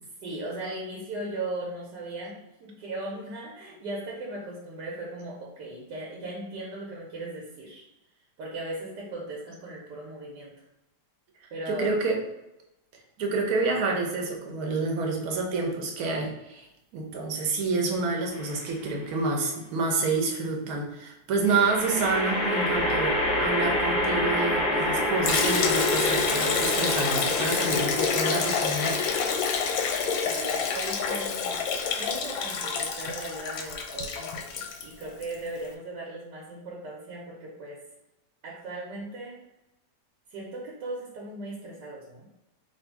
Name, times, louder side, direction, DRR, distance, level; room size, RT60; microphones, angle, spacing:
voice 1, 0.2-7.8 8.4-10.5 11.5-12.0 30.2-31.6 32.0-37.8 38.4-39.4 40.3-42.3, right 2 dB, 80° right, -3 dB, 1.4 m, -38 dB
voice 2, 11.7-12.2 13.2-16.7 16.9-29.0, right 3 dB, 65° right, 1 dB, 1.2 m, -28 dB
sound 1, 18.3-18.9 21.4-32.8, left 1 dB, 45° left, 0.6 m, -29 dB
Liquid, 25.3-35.4, left 6 dB, 70° left, 0.9 m, -28 dB
3.1 x 2.6 x 4.4 m, 0.93 s
omnidirectional pair, 1.8 m